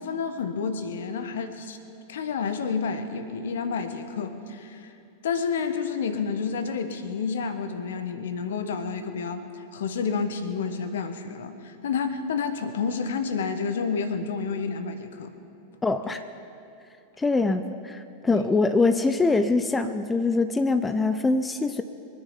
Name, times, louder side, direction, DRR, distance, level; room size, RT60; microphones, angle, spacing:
voice 1, 0.0-1.8 2.1-4.9 5.2-9.4 9.7-15.3 16.1-16.2 18.3-18.4, left 5 dB, 60° left, 9 dB, 1.3 m, -30 dB
voice 2, 15.8-16.2 17.2-21.8, left 3 dB, 10° left, 10 dB, 0.6 m, -23 dB
24.0 x 10.0 x 5.8 m, 2.7 s
figure-of-eight pair, 90°, 0 cm